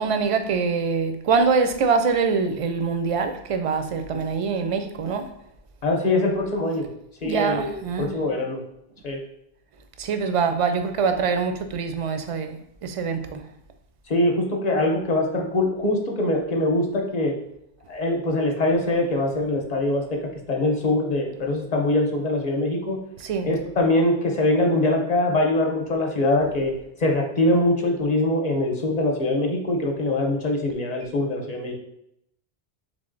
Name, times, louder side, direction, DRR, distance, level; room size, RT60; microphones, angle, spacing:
voice 1, 0.0-5.3 7.2-8.2 10.0-13.4 23.2-23.6, right 5 dB, 55° right, 0.4 m, -24 dB
voice 2, 5.8-6.9 7.2-8.6 9.0-9.2 14.1-17.3 17.9-23.0 23.4-26.7 27.0-31.7, left 1 dB, 45° left, 0.8 m, -23 dB
3.7 x 3.4 x 3.8 m
omnidirectional pair, 1.0 m